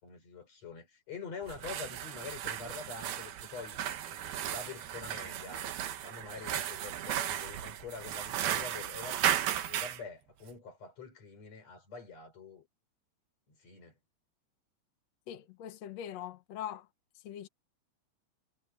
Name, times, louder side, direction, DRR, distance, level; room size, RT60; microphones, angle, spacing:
voice 1, 0.0-3.8 4.1-5.7 6.0-9.3 9.6-12.7 13.5-14.0, left 5 dB, 40° left, 5.8 m, -46 dB
sound 1, 1.4-10.0, right 11 dB, 70° right, 3.1 m, -35 dB
voice 2, 15.3-16.9 17.1-17.5, left 10 dB, 70° left, 1.6 m, -42 dB
omnidirectional pair, 4.7 m